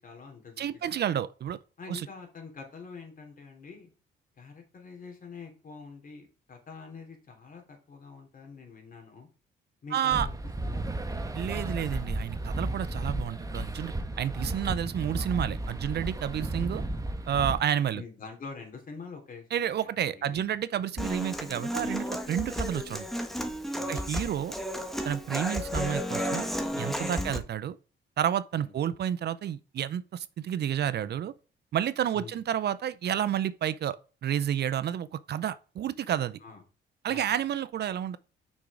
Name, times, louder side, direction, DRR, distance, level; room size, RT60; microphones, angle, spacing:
voice 1, 0.0-0.7 0.9-1.2 1.8-3.9 4.4-9.3 9.8-10.3 10.6-10.9 17.9-20.4 20.7-20.9 23.7-24.0 27.2-27.4 28.5-28.7 32.1-32.4 36.4-36.6 37.1-37.4, left 4 dB, 45° left, 3.3 m, -46 dB
voice 2, 0.6-1.6 1.9-2.1 9.9-10.3 11.3-16.8 17.3-18.0 19.5-23.1 23.9-24.5 25.0-26.5 26.8-27.8 28.2-31.3 31.7-36.4 37.0-38.2, right 10 dB, 55° right, 0.6 m, -30 dB
sound 1, 10.1-17.6, right 2 dB, 15° right, 1.1 m, -33 dB
Human voice / Acoustic guitar, 21.0-27.4, equal, ahead, 1.4 m, -33 dB
6.1 x 6.0 x 5.0 m
cardioid pair, 90°, 20 cm